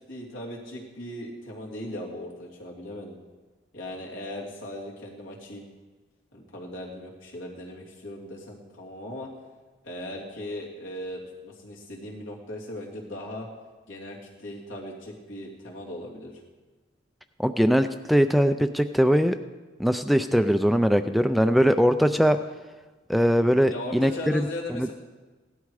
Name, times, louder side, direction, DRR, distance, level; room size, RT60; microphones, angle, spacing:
voice 1, 0.1-3.2 3.7-5.6 6.3-9.3 9.8-13.5 13.9-16.4 23.7-24.9, left 1 dB, 80° left, -2 dB, 3.1 m, -38 dB
voice 2, 17.4-19.4 19.8-22.4 23.1-24.9, equal, ahead, 8 dB, 0.3 m, -21 dB
17.0 x 12.0 x 4.8 m, 1.3 s
head